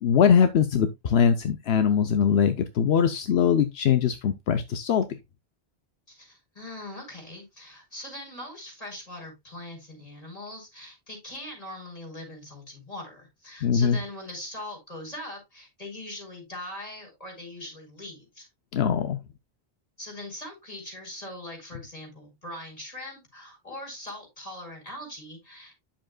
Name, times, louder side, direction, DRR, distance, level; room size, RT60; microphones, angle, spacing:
voice 1, 0.0-5.1 13.6-14.0 18.7-19.2, left 7 dB, 80° left, 0.9 m, -22 dB
voice 2, 6.1-18.5 20.0-25.7, left 1 dB, 35° left, 4.9 m, -41 dB
10.0 x 7.2 x 2.3 m
omnidirectional pair, 1.0 m